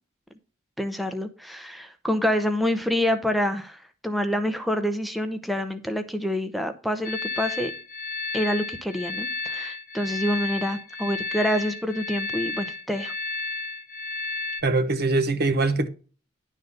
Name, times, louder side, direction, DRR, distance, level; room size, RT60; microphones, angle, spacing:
voice 1, 0.8-7.7 8.3-13.1, equal, ahead, 0.7 m, -27 dB
sound 1, 7.0-14.6, left 4 dB, 45° left, 1.1 m, -32 dB
voice 2, 14.6-15.9, right 3 dB, 50° right, 1.0 m, -22 dB
11.0 x 4.0 x 6.6 m
head